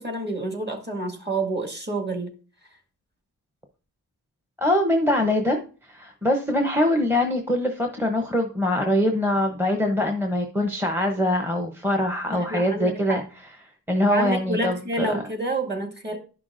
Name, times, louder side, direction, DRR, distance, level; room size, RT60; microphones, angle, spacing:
voice 1, 0.0-2.3 12.3-13.2 14.0-16.2, right 2 dB, 30° right, 2 dB, 1.9 m, -28 dB
voice 2, 4.6-5.6 5.9-13.2 13.9-15.1, left 1 dB, 5° right, 3 dB, 0.8 m, -23 dB
11.5 x 5.8 x 2.6 m, 0.38 s
wide cardioid pair, 95°, 37 cm